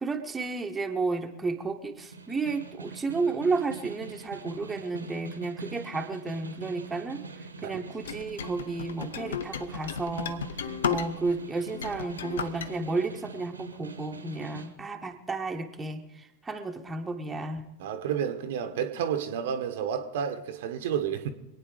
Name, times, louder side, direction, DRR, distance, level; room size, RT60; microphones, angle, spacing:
voice 1, 0.0-7.2 7.6-17.6, right 3 dB, 10° right, 3 dB, 1.3 m, -32 dB
Snare drum, 2.0-14.7, right 4 dB, 75° right, 1.4 m, -44 dB
sound 1, 8.0-11.4 11.7-12.7, left 7 dB, 65° left, 0.8 m, -34 dB
voice 2, 17.8-21.3, right 8 dB, 55° right, 8 dB, 1.2 m, -31 dB
25.0 x 9.3 x 4.9 m, 0.87 s
figure-of-eight pair, 90°, 0 cm